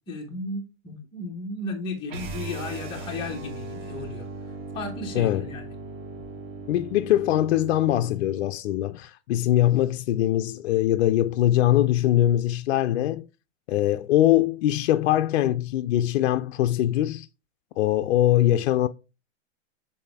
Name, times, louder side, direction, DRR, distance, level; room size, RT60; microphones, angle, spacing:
voice 1, 0.1-4.3 4.7-5.7, left 2 dB, 15° left, 1.2 m, -34 dB
sound 1, 2.1-8.2, right 3 dB, 45° right, 2.2 m, -38 dB
voice 2, 5.1-5.5 6.7-13.2 13.7-17.3 17.8-18.9, left 13 dB, 60° left, 0.5 m, -22 dB
7.7 x 4.2 x 3.4 m
supercardioid pair, 160°, 38 cm